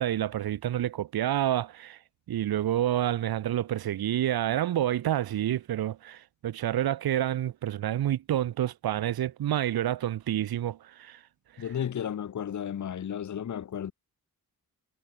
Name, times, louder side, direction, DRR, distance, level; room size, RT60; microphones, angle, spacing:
voice 1, 0.0-2.0 2.3-11.2, right 12 dB, 75° right, 1.1 m, -28 dB
voice 2, 11.6-13.9, left 9 dB, 50° left, 1.1 m, -33 dB
cardioid pair, 95°, 37 cm